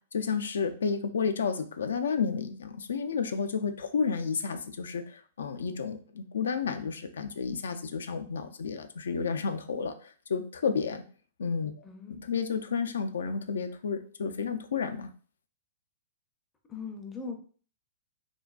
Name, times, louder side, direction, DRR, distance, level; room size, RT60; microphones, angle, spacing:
voice 1, 0.1-11.0 11.4-15.1, left 5 dB, 85° left, 8 dB, 0.3 m, -31 dB
voice 2, 11.8-12.2 16.7-17.4, left 4 dB, 15° left, 3 dB, 0.4 m, -39 dB
2.5 x 2.2 x 2.3 m, 0.43 s
hypercardioid pair, 135°, 0 cm